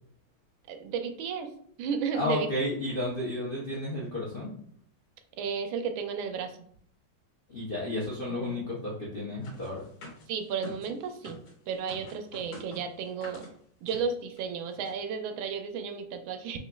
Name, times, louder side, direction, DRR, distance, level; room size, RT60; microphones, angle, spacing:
voice 1, 0.7-1.5 1.8-2.5 5.4-6.6 8.4-8.6 10.3-11.4 11.7-13.5 13.8-16.6, right 6 dB, 90° right, 7 dB, 1.4 m, -33 dB
voice 2, 2.1-4.5 7.5-9.8, left 1 dB, 65° left, -6 dB, 0.5 m, -32 dB
sound 1, 9.4-11.5 11.9-13.5 13.9-14.1 14.4-14.5 14.7-14.9, equal, 85° left, 1.9 m, -46 dB
5.1 x 2.5 x 2.2 m, 0.63 s
omnidirectional pair, 2.1 m